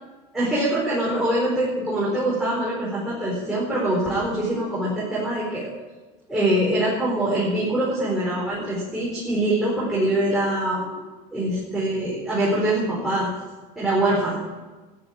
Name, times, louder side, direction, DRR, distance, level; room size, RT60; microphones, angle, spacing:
voice 1, 0.3-5.7 6.3-10.9 11.3-13.3 13.8-14.4, right 1 dB, ahead, -8 dB, 4.5 m, -24 dB
13.5 x 10.5 x 8.9 m, 1.3 s
cardioid pair, 150°, 16 cm